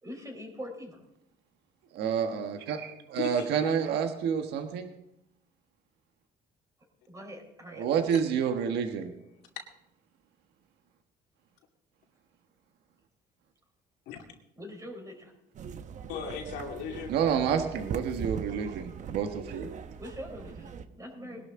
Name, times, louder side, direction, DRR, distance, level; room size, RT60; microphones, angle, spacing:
voice 1, 0.0-1.0 7.1-7.9 14.6-15.3 20.0-21.5, equal, 20° right, 2 dB, 4.3 m, -43 dB
voice 2, 1.9-4.9 7.8-9.1 17.1-19.7, right 7 dB, 80° right, 6 dB, 1.4 m, -29 dB
voice 3, 3.1-3.8 8.1-8.2 14.1-14.2 16.1-17.1 21.1-21.5, left 7 dB, 85° left, 2 dB, 2.4 m, -38 dB
sound 1, 15.5-20.8, right 7 dB, 45° right, 0.9 m, -41 dB
20.5 x 12.0 x 3.8 m, 0.81 s
cardioid pair, 110°, 17 cm